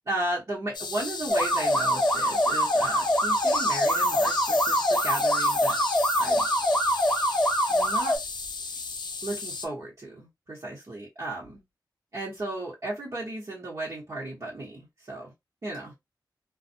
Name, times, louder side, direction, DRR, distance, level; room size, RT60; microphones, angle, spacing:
voice 1, 0.1-5.8 6.2-6.5 7.7-8.2 9.2-11.6 12.1-15.3 15.6-15.9, right 1 dB, 50° right, 1.1 m, -35 dB
sound 1, 0.7-9.7, left 4 dB, 70° left, 0.5 m, -34 dB
sound 2, 1.3-8.2, equal, 10° left, 1.2 m, -24 dB
2.3 x 2.3 x 2.7 m
wide cardioid pair, 65°, 8 cm